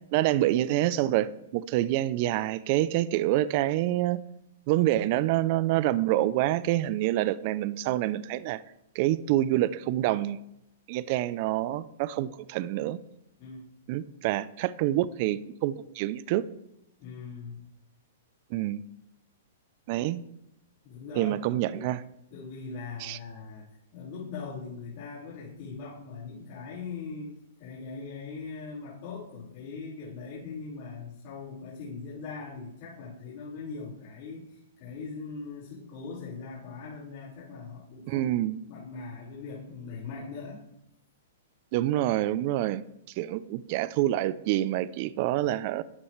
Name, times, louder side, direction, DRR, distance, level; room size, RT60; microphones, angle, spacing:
voice 1, 0.1-4.2 4.7-8.6 9.0-10.4 10.9-13.0 13.9-16.4 18.5-18.8 19.9-20.2 21.2-22.0 23.0-23.2 38.1-38.6 41.7-42.8 43.2-45.8, right 14 dB, 45° right, 0.5 m, -27 dB
voice 2, 17.0-17.7 20.8-22.0 22.3-27.3 27.6-38.3 38.7-40.7, left 4 dB, 50° left, 4.7 m, -41 dB
12.5 x 9.6 x 3.2 m
hypercardioid pair, 140°, 0 cm